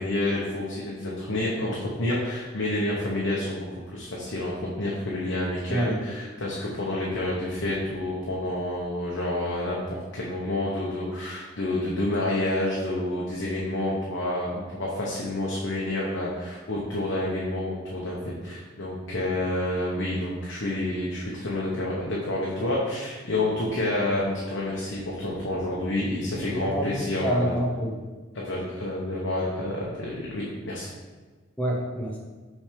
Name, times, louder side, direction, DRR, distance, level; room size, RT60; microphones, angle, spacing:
voice 1, 0.0-27.6 28.3-30.9, left 1 dB, 65° left, -4 dB, 0.9 m, -29 dB
voice 2, 5.7-6.0 26.5-28.1 31.6-32.2, right 1 dB, 5° left, -2 dB, 0.9 m, -27 dB
5.9 x 3.3 x 5.1 m, 1.4 s
head